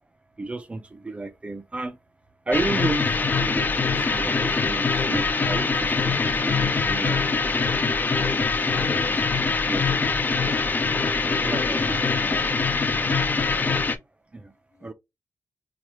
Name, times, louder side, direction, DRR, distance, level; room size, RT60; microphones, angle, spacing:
voice 1, 0.4-2.0 2.5-3.1 3.4-7.5 8.1-9.1 9.6-11.0 11.4-12.0 13.0-13.1 14.3-14.5 14.8-14.9, right 2 dB, 20° right, 0.5 m, -33 dB
sound 1, 2.5-14.0, left 4 dB, 30° left, 0.5 m, -23 dB
voice 2, 8.7-9.2 11.5-12.5 13.4-13.7 14.7-14.9, left 4 dB, 55° left, 0.9 m, -39 dB
4.7 x 2.3 x 2.9 m
wide cardioid pair, 150°, 6 cm